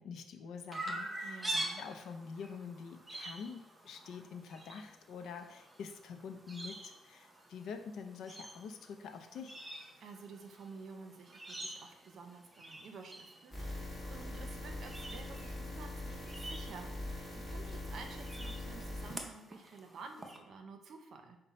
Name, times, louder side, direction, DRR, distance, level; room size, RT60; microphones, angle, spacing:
voice 1, 0.0-9.6, left 6 dB, 75° left, 6 dB, 0.5 m, -46 dB
Chirp tweet, 0.7-20.4, right 1 dB, 15° right, 0.7 m, -46 dB
voice 2, 1.2-1.8 10.0-21.4, right 4 dB, 65° right, 5 dB, 0.6 m, -51 dB
sound 1, 13.5-19.2, left 1 dB, 15° left, 1.5 m, -42 dB
5.5 x 2.2 x 4.1 m, 0.88 s
cardioid pair, 90°, 0 cm